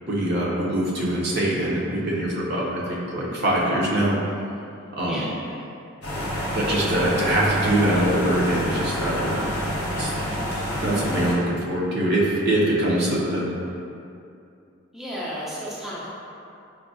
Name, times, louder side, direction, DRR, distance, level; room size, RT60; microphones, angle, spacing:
voice 1, 0.1-4.1 5.0-5.2 6.5-9.5 10.0-10.1 10.8-13.4, right 1 dB, 55° right, -5 dB, 0.6 m, -23 dB
voice 2, 5.0-5.6 14.9-16.1, equal, ahead, -8 dB, 0.3 m, -33 dB
sound 1, 6.0-11.3, equal, 55° left, 0.7 m, -28 dB
4.6 x 2.2 x 2.5 m, 2.6 s
head